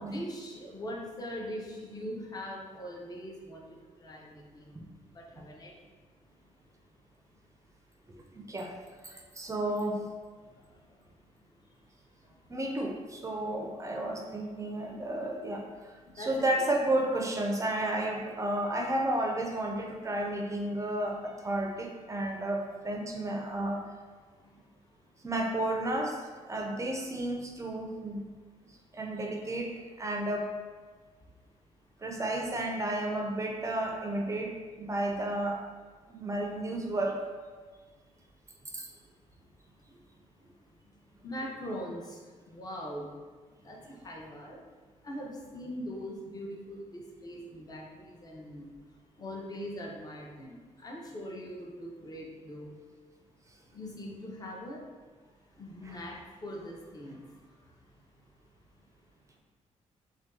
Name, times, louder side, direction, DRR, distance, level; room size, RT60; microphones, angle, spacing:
voice 1, 0.0-5.7 6.2-6.9 7.3-7.4 8.2-8.5 10.4-12.5 16.0-16.5 24.3-25.2 28.8-28.9 31.2-31.3 36.2-36.3 38.5-39.3 39.7-39.8 40.6-43.1 43.4-44.6 45.0-52.8 53.7-54.9 55.5-57.9 58.2-58.3 58.7-58.8, equal, 30° left, -1 dB, 0.6 m, -43 dB
voice 2, 8.1-8.7 9.0-10.1 12.5-23.8 25.2-26.2 26.5-28.3 28.9-30.5 32.0-35.6 36.1-37.2 38.7-38.9 55.9-56.0, right 1 dB, 25° right, 1 dB, 0.4 m, -32 dB
2.6 x 2.2 x 3.6 m, 1.4 s
cardioid pair, 95°, 13 cm